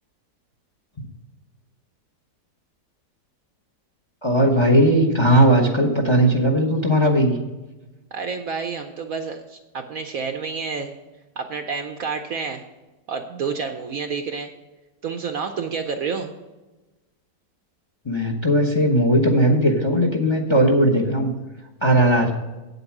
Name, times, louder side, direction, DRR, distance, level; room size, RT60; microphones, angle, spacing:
voice 1, 4.2-7.4 18.0-21.3 21.8-22.3, right 1 dB, 20° left, 3 dB, 0.9 m, -18 dB
voice 2, 8.1-10.9 11.4-12.6 13.1-14.5 15.0-16.3, right 5 dB, 60° right, 6 dB, 1.0 m, -29 dB
8.9 x 8.0 x 6.0 m, 1.1 s
omnidirectional pair, 1.9 m